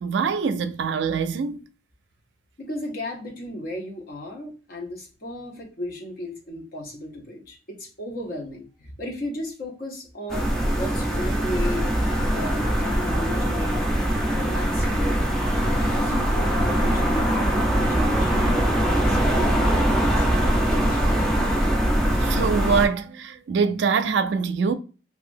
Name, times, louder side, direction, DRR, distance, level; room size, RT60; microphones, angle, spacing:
voice 1, 0.0-1.6 22.2-24.7, right 5 dB, 70° right, 0.3 m, -24 dB
voice 2, 2.6-10.5 10.8-12.0 12.3-13.8 14.3-15.3 15.6-21.1, left 1 dB, 55° left, 0.9 m, -35 dB
sound 1, 10.3-22.9, right 1 dB, 5° left, 0.5 m, -22 dB
2.8 x 2.4 x 2.5 m
head